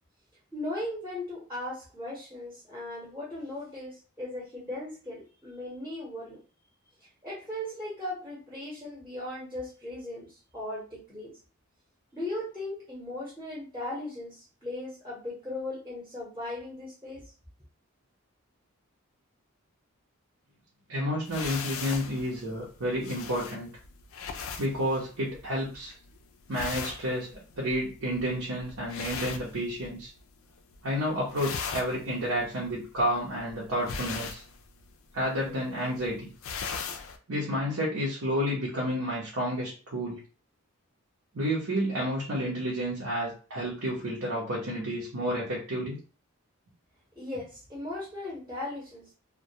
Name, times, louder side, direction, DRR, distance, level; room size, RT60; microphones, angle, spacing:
voice 1, 0.5-6.4 7.0-11.3 12.1-17.3 47.2-49.1, left 1 dB, 10° right, -6 dB, 0.7 m, -38 dB
voice 2, 20.9-23.7 24.6-25.9 26.5-30.1 30.8-34.4 35.1-36.3 37.3-40.2 41.3-46.0, equal, 75° right, -5 dB, 0.8 m, -30 dB
sound 1, 21.2-30.2 30.5-30.9 31.2-37.2, left 6 dB, 65° left, 0.3 m, -39 dB
2.2 x 2.2 x 2.7 m, 0.36 s
head